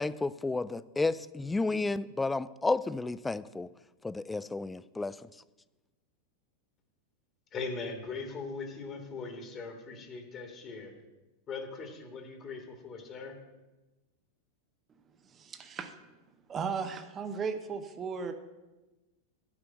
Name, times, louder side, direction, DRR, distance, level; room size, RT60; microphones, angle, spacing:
voice 1, 0.0-3.7 4.0-5.2, left 3 dB, 10° left, 17 dB, 0.3 m, -31 dB
voice 2, 7.5-10.9 11.5-13.3, left 4 dB, 30° left, 4 dB, 1.7 m, -40 dB
voice 3, 15.2-15.9 16.5-18.3, right 5 dB, 25° right, 8 dB, 0.8 m, -36 dB
10.0 x 6.0 x 7.6 m, 1.1 s
figure-of-eight pair, 90°, 0 cm